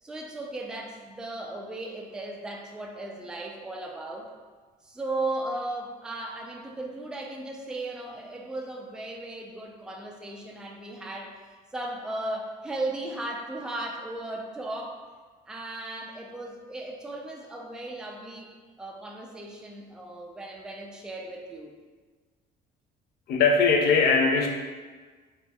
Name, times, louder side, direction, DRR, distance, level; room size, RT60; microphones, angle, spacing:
voice 1, 0.0-4.3 4.8-15.0 15.5-18.5 18.8-21.8, right 2 dB, 5° right, 0 dB, 0.3 m, -36 dB
voice 2, 23.3-24.5, left 4 dB, 70° left, 2 dB, 0.5 m, -20 dB
3.3 x 3.0 x 2.2 m, 1.4 s
cardioid pair, 110°, 17 cm